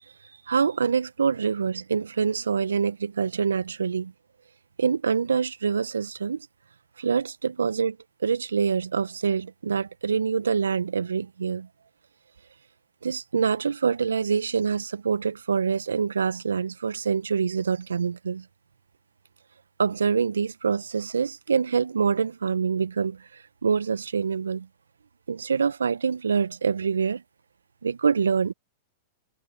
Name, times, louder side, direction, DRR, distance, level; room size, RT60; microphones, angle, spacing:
voice 1, 0.5-4.1 4.8-6.5 7.0-11.7 13.0-18.4 19.8-24.7 25.3-27.2 27.8-28.5, right 6 dB, 80° right, 1.4 m, -25 dB
figure-of-eight pair, 100°, 0 cm